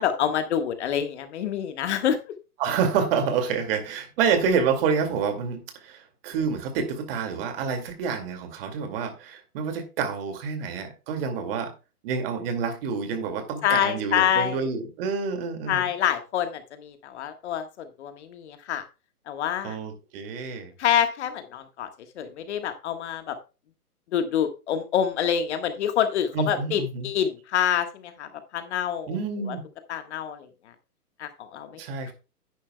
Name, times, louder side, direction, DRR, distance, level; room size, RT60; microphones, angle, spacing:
voice 1, 0.0-2.3 13.6-14.7 15.7-18.8 19.3-19.8 20.8-21.9 22.2-23.3 24.1-29.1 29.5-29.6 29.9-30.5 31.2-31.8 32.1-32.2, left 9 dB, 45° left, 1.5 m, -26 dB
voice 2, 2.6-11.7 12.0-15.9 19.6-20.7 26.3-27.1 29.1-29.6 31.8-32.1, right 6 dB, 35° right, 2.3 m, -28 dB
10.5 x 10.0 x 2.2 m
hypercardioid pair, 135°, 47 cm